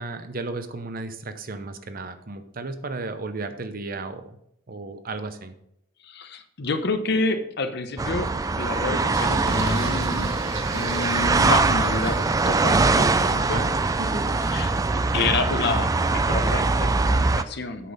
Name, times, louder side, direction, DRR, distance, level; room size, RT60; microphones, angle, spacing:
voice 1, 0.0-4.4 4.7-5.5 13.4-13.8, right 3 dB, 45° right, 9 dB, 0.7 m, -34 dB
voice 2, 6.0-10.3 10.7-12.2 12.5-13.6 14.5-14.7 15.1-17.9, left 3 dB, 55° left, 8 dB, 0.9 m, -28 dB
sound 1, 8.0-17.4, right 3 dB, 15° right, 0.3 m, -22 dB
Singing, 9.1-14.9, right 2 dB, 85° right, 1.8 m, -37 dB
8.4 x 6.0 x 5.3 m, 0.76 s
head